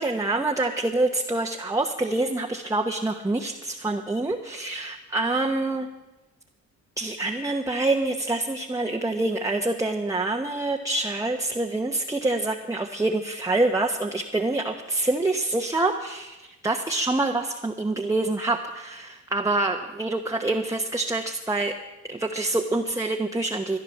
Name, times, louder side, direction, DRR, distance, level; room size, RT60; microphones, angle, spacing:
voice 1, 0.0-5.9 7.0-21.7 22.1-23.8, right 2 dB, 10° right, 2 dB, 1.0 m, -26 dB
14.5 x 10.5 x 7.1 m, 1.1 s
cardioid pair, 90°, 30 cm